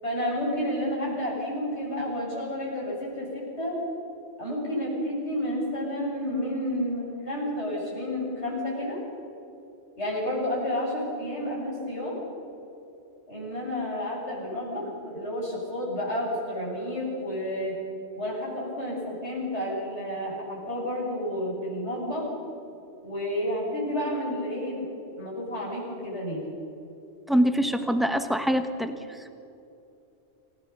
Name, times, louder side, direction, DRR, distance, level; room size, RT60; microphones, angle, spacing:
voice 1, 0.0-3.8 4.4-9.0 10.0-12.2 13.3-17.8 18.2-22.3 23.0-24.9 25.2-26.4, left 1 dB, 75° left, -5 dB, 7.9 m, -30 dB
voice 2, 27.3-29.3, equal, ahead, 7 dB, 1.3 m, -25 dB
28.0 x 16.5 x 6.9 m, 2.8 s
omnidirectional pair, 1.2 m